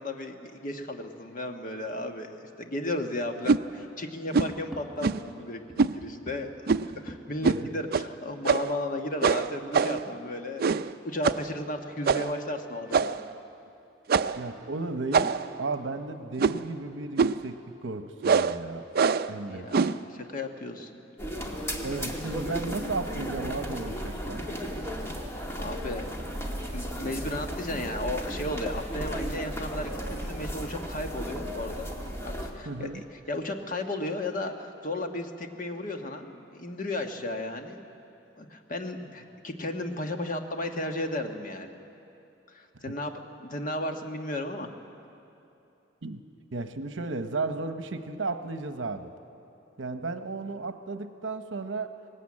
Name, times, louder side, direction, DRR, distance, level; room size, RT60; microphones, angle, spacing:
voice 1, 0.0-6.7 7.0-10.6 11.0-13.1 19.2-21.0 25.6-26.1 26.7-31.9 32.2-32.9 33.3-37.8 38.4-41.7 42.5-43.1 43.4-44.7, left 1 dB, 45° left, 5 dB, 1.3 m, -34 dB
sound 1, 3.4-3.6 4.3-4.6 5.0-5.3 5.8-6.0 6.7-7.0 7.4-7.6 7.9-8.1 8.4-8.8 9.2-10.1 10.6-10.9 11.2-11.5 12.0-12.4 12.9-13.3 14.1-14.4 15.1-15.6 16.4-16.7 17.2-17.5 18.2-18.6 18.9-19.3 19.7-20.0, right 5 dB, 50° right, 0.4 m, -24 dB
sound 2, 4.5-5.3 5.7-7.5 8.2-8.3 8.5-8.6 9.3-10.2 12.0-12.1 12.6-13.1 13.5-13.6 14.1-15.0, right 1 dB, ahead, 1.3 m, -46 dB
voice 2, 14.4-18.8 19.3-19.7 21.8-24.5 32.6-33.0 42.9-43.0 46.0-46.2 46.5-49.1 49.8-51.9, right 3 dB, 75° right, 9 dB, 0.9 m, -34 dB
sound 3, 21.2-32.5, equal, 15° left, 1.9 m, -35 dB
20.0 x 18.5 x 8.6 m, 2.8 s
head